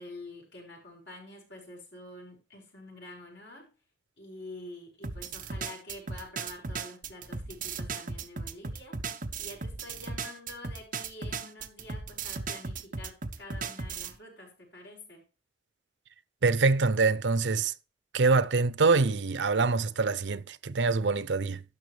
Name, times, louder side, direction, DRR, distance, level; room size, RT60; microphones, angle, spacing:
voice 1, 0.0-3.7 4.2-9.0 9.4-15.2, left 1 dB, 75° left, 5.7 m, -47 dB
sound 1, 5.0-14.1, right 4 dB, 50° right, 0.9 m, -36 dB
voice 2, 16.4-17.7 18.1-21.6, right 4 dB, 90° right, 0.6 m, -25 dB
12.5 x 8.6 x 3.3 m
head